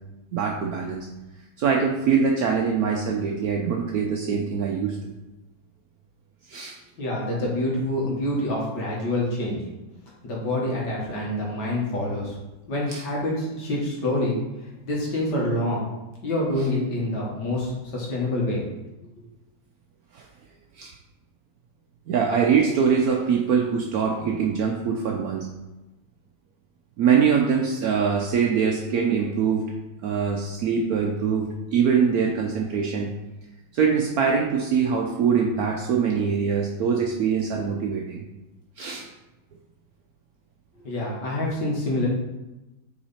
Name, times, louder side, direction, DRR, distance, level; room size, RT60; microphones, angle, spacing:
voice 1, 0.3-1.1 1.6-5.1 6.5-6.8 12.9-13.0 20.1-20.3 20.8-20.9 22.1-25.5 27.0-29.7 30.0-33.1 33.7-38.2 38.8-39.1, right 6 dB, 70° right, 1 dB, 0.9 m, -23 dB
voice 2, 7.0-9.6 10.2-12.4 12.7-14.4 14.9-15.8 16.2-18.6 40.8-42.1, left 1 dB, 65° left, -4 dB, 2.1 m, -26 dB
5.8 x 4.0 x 4.2 m, 1.0 s
omnidirectional pair, 2.0 m